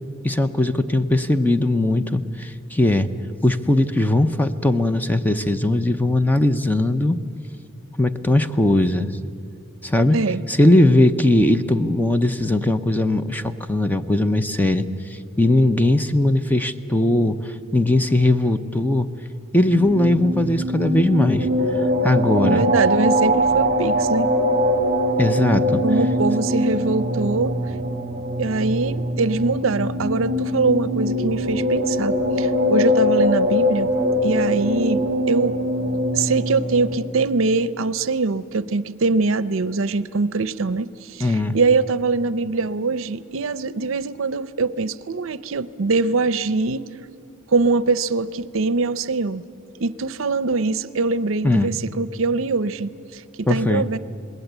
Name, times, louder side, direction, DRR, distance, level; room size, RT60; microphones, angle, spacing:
voice 1, 0.2-3.1 3.4-7.2 8.0-9.1 9.8-10.2 10.5-19.1 19.5-21.5 22.0-22.7 25.2-25.8 41.2-41.6 51.4-51.7 53.5-53.9, left 1 dB, 10° left, 10 dB, 0.7 m, -19 dB
voice 2, 10.1-10.4 22.4-24.3 25.8-27.5 28.4-33.9 34.2-35.6 36.1-46.9 47.5-49.4 49.8-54.0, right 3 dB, 65° right, 16 dB, 0.6 m, -23 dB
sound 1, 19.6-36.9, equal, 35° right, 2.5 m, -22 dB
26.5 x 20.5 x 8.1 m, 2.4 s
head